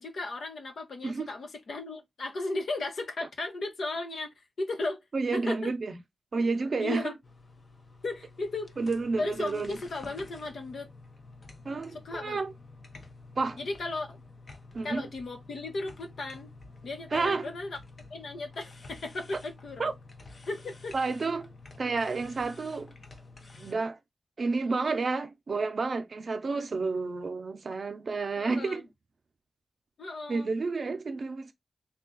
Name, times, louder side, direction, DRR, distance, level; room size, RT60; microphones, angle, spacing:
voice 1, 0.0-5.0 5.3-5.7 6.8-7.1 8.0-8.8 9.2-10.9 12.0-12.4 13.6-14.2 14.8-16.5 16.8-17.8 18.1-19.9 20.5-20.9 28.4-28.8 30.0-30.5, left 2 dB, 80° left, 0.9 m, -35 dB
voice 2, 5.1-6.0 6.3-7.1 8.8-9.7 11.6-12.5 13.4-13.6 14.7-15.0 17.1-17.5 19.3-19.4 19.8-19.9 20.9-21.5 21.8-22.9 23.6-24.0 24.4-28.8 30.3-31.5, right 4 dB, 50° right, 0.6 m, -30 dB
sound 1, 7.2-23.7, left 3 dB, 40° left, 0.6 m, -50 dB
3.5 x 2.3 x 3.8 m
wide cardioid pair, 160°, 0 cm